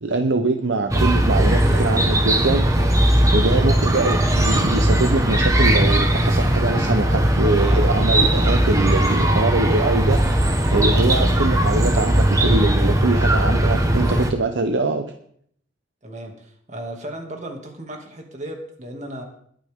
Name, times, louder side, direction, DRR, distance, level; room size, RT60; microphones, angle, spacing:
voice 1, 0.0-2.7 3.3-10.4 10.7-15.1, right 2 dB, 80° right, 6 dB, 0.9 m, -23 dB
Chirp tweet, 0.9-14.3, right 1 dB, 20° right, 1.4 m, -18 dB
voice 2, 1.7-2.1 3.4-3.7 11.2-11.4 16.0-19.2, right 1 dB, 40° right, 2 dB, 2.4 m, -35 dB
21.0 x 9.0 x 3.7 m, 0.65 s
head